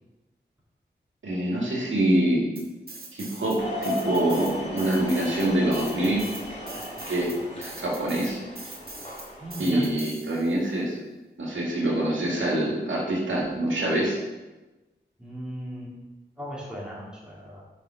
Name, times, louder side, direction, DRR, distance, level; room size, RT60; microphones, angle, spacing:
voice 1, 1.2-2.5 3.1-6.2 6.7-6.8 7.1-7.3 7.6-8.4 9.6-11.0 11.4-14.2, right 1 dB, 90° right, -4 dB, 2.1 m, -25 dB
sound 1, 2.6-3.6 3.8-10.7, right 2 dB, 50° right, 1.9 m, -42 dB
sound 2, 3.6-9.9, left 1 dB, 35° left, 2.5 m, -36 dB
voice 2, 9.4-9.8 15.2-15.9 16.4-17.6, equal, 5° right, -7 dB, 3.0 m, -37 dB
7.2 x 5.4 x 5.7 m, 1.1 s
wide cardioid pair, 90°, 19 cm